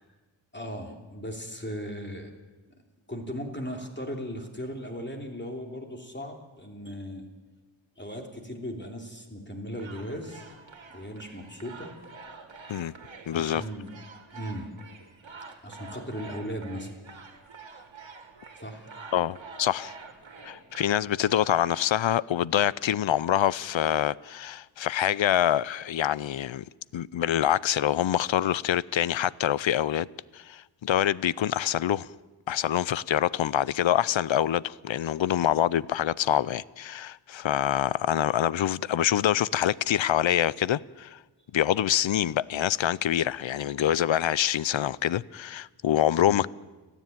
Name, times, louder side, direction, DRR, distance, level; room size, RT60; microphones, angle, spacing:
voice 1, 0.5-2.3 3.1-7.3 8.0-10.5 10.9-11.9 13.3-13.9 14.3-14.7 15.6-16.9 18.6-18.9 46.2-46.4, equal, 25° left, 3.0 m, -37 dB
sound 1, 9.7-21.9, right 4 dB, 75° right, 2.1 m, -47 dB
voice 2, 13.3-13.6 19.1-19.9 20.4-26.7 26.9-30.1 30.3-32.1 32.5-41.2 41.5-46.5, left 11 dB, 75° left, 0.6 m, -25 dB
30.0 x 10.0 x 9.2 m
wide cardioid pair, 90°, 46 cm